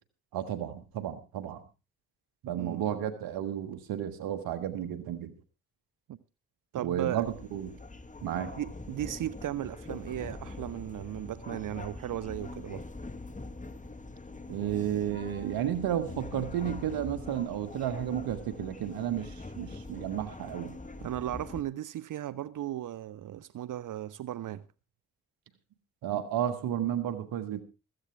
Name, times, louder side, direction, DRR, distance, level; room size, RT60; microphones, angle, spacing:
voice 1, 0.3-1.6 2.4-5.3 6.7-7.7 8.2-8.5 14.5-20.8 26.0-27.6, right 10 dB, 80° right, 1.7 m, -32 dB
voice 2, 6.7-7.3 8.6-12.8 21.0-24.6, right 12 dB, 60° right, 0.7 m, -36 dB
sound 1, 7.2-21.6, left 2 dB, 20° left, 1.5 m, -43 dB
15.5 x 14.5 x 3.4 m
hypercardioid pair, 45°, 35 cm